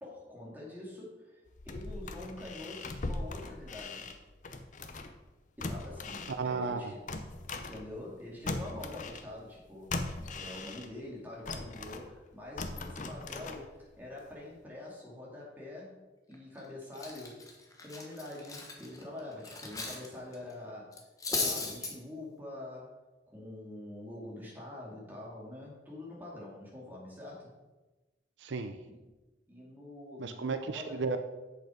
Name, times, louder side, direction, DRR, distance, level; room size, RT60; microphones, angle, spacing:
voice 1, 0.0-1.4 1.6-4.1 5.6-7.1 7.5-16.0 16.3-17.4 17.8-21.0 21.3-22.9 23.3-27.5 28.9-29.0 29.5-31.0, left 1 dB, 10° right, -4 dB, 2.4 m, -45 dB
sound 1, 1.5-5.2 5.6-8.2 8.5-11.1 11.5-14.0 14.3-14.4, left 2 dB, 40° left, 0.7 m, -40 dB
voice 2, 6.4-6.8 28.4-28.8 30.2-31.2, right 4 dB, 75° right, 8 dB, 0.5 m, -33 dB
Cutlery silverware, 16.3-16.6 16.9-20.1 20.3-20.5 20.9-21.9, left 3 dB, 20° left, 1.1 m, -36 dB
8.0 x 6.6 x 5.1 m, 1.2 s
head